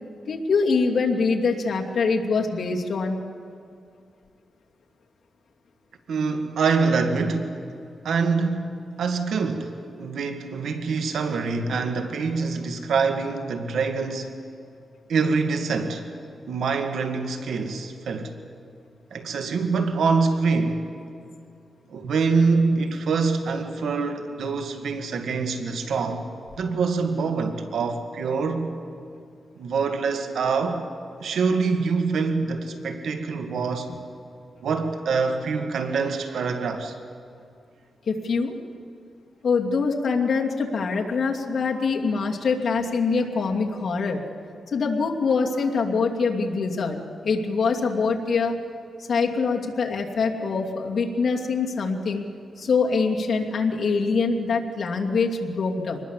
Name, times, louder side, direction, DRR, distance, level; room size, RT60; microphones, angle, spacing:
voice 1, 0.3-3.2 33.9-34.0 38.1-38.5 39.4-44.2 44.7-48.6 49.1-52.2 52.6-56.0, left 4 dB, 55° left, 0 dB, 2.7 m, -24 dB
voice 2, 6.1-7.5 8.0-8.7 9.0-14.3 15.1-16.0 16.5-18.4 19.1-20.8 21.9-26.3 26.6-28.8 29.6-30.8 31.2-33.9 34.6-37.0, right 4 dB, 80° right, 6 dB, 1.9 m, -25 dB
25.0 x 20.5 x 7.5 m, 2.4 s
cardioid pair, 110°, 0 cm